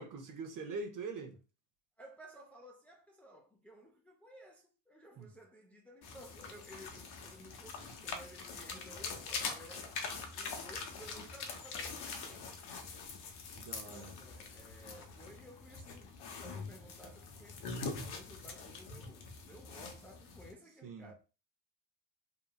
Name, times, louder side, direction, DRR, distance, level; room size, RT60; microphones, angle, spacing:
voice 1, 0.0-1.4 5.2-5.3 13.5-14.1 20.8-21.1, right 3 dB, 40° right, 0.9 m, -43 dB
voice 2, 2.0-9.9 10.3-12.5 13.8-21.1, equal, 5° left, 0.6 m, -56 dB
sound 1, 6.0-20.5, left 4 dB, 55° left, 0.9 m, -44 dB
2.9 x 2.4 x 2.3 m
hypercardioid pair, 65°, 47 cm